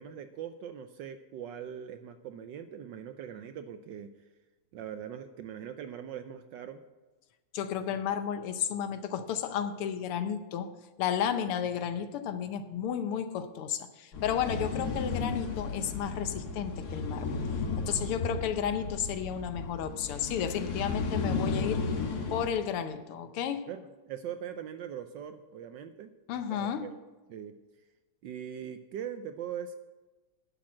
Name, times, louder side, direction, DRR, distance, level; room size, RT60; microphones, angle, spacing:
voice 1, 0.0-4.1 4.7-6.8 23.7-26.1 26.5-27.0 27.3-27.6 28.2-29.8, right 9 dB, 75° right, 9 dB, 1.1 m, -41 dB
voice 2, 7.5-10.7 11.0-17.4 17.8-21.8 22.3-23.7 26.3-26.9, left 8 dB, 85° left, 9 dB, 1.7 m, -32 dB
sound 1, 14.1-22.5, left 4 dB, 55° left, 1.4 m, -34 dB
10.5 x 7.0 x 7.3 m, 1.2 s
omnidirectional pair, 2.4 m